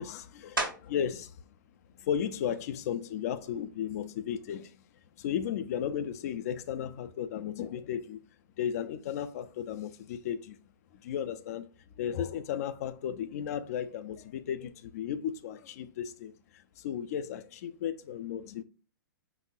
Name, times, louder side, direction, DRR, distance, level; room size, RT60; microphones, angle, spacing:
voice 1, 0.0-1.4 1.9-4.8 5.2-8.2 8.6-10.6 10.9-11.7 12.0-18.6, left 9 dB, 50° left, 0.5 m, -35 dB
sound 1, 0.6-1.2 1.7-6.1 6.7-11.8 12.1-17.8, right 2 dB, 90° right, 1.4 m, -45 dB
5.3 x 4.1 x 2.4 m
figure-of-eight pair, 105°, 11 cm